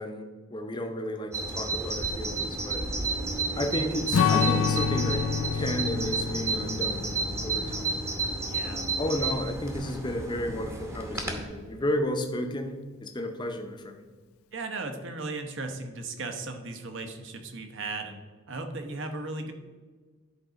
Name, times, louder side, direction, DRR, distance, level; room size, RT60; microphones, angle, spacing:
voice 1, 0.0-2.8 3.6-7.1 7.4-8.0 8.6-14.1, left 1 dB, 20° left, 5 dB, 0.6 m, -33 dB
Bird vocalization bird call bird song, 1.3-11.4, right 3 dB, 10° right, 0.8 m, -32 dB
Strum, 4.1-8.8, left 6 dB, 75° left, 0.4 m, -28 dB
voice 2, 8.5-8.9 14.5-18.2 18.5-19.5, right 3 dB, 55° right, 6 dB, 0.9 m, -36 dB
10.0 x 3.9 x 5.1 m, 1.4 s
head